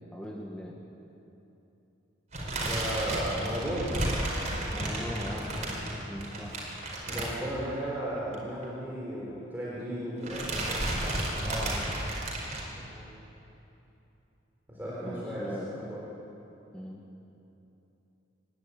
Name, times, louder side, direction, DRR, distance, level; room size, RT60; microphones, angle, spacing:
voice 1, 0.1-0.9 4.7-6.8 11.4-12.2 15.0-16.0 16.7-17.0, equal, 5° left, -2 dB, 1.6 m, -40 dB
sound 1, 2.3-7.9 8.2-8.4 8.6-8.7 9.7-10.0 10.2-12.6, right 1 dB, 35° right, 5.0 m, -32 dB
voice 2, 2.6-4.1 7.1-11.0 12.9-13.1 14.7-16.0, right 1 dB, 10° right, -7 dB, 3.9 m, -35 dB
26.0 x 12.0 x 10.0 m, 2.9 s
head